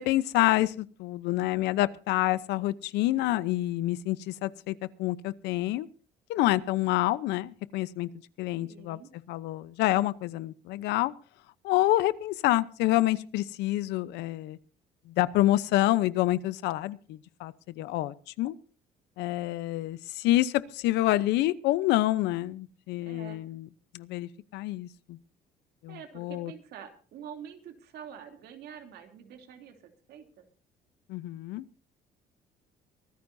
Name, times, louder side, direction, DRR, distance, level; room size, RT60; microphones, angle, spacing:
voice 1, 0.0-5.9 6.3-8.1 8.4-9.0 9.3-11.1 11.6-14.6 15.1-18.5 19.2-23.7 23.9-25.2 25.8-26.5 31.1-31.6, left 16 dB, 90° left, 17 dB, 0.8 m, -27 dB
voice 2, 8.6-9.1 23.0-23.4 25.9-30.5, right 8 dB, 70° right, 6 dB, 3.0 m, -46 dB
24.0 x 13.5 x 2.7 m, 0.39 s
cardioid pair, 110°, 17 cm